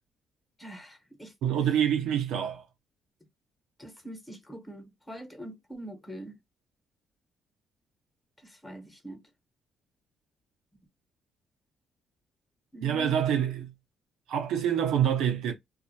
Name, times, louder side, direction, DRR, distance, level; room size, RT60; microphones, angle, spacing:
voice 1, 0.6-1.3 3.8-6.4 8.4-9.2 12.7-13.1, right 1 dB, 10° left, 1.0 m, -44 dB
voice 2, 1.4-2.6 12.8-13.7 14.3-15.5, right 9 dB, 90° right, 0.7 m, -26 dB
2.3 x 2.1 x 2.8 m
cardioid pair, 90°, 0 cm